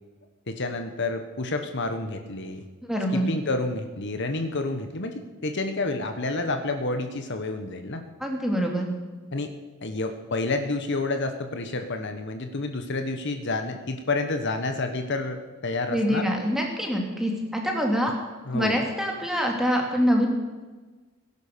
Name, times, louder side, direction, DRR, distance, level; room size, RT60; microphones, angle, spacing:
voice 1, 0.5-2.6 3.1-8.0 9.3-9.5 9.8-16.3 18.5-18.8, left 2 dB, 55° left, 7 dB, 1.3 m, -29 dB
voice 2, 2.8-3.3 8.2-8.9 15.9-18.1 18.5-20.3, equal, ahead, 1 dB, 2.6 m, -25 dB
17.5 x 11.0 x 6.8 m, 1.3 s
head